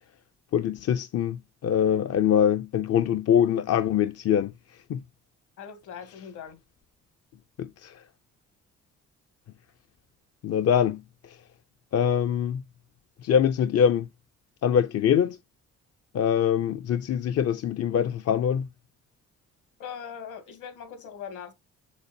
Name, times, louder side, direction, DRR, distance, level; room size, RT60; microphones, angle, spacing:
voice 1, 0.5-4.5 4.9-5.0 7.6-7.9 10.4-11.0 11.9-12.6 13.2-14.1 14.6-15.4 16.1-18.7, left 8 dB, 55° left, 0.6 m, -23 dB
voice 2, 5.6-6.6 19.8-21.5, left 7 dB, 80° left, 2.8 m, -40 dB
7.2 x 6.5 x 2.7 m
cardioid pair, 90°, 30 cm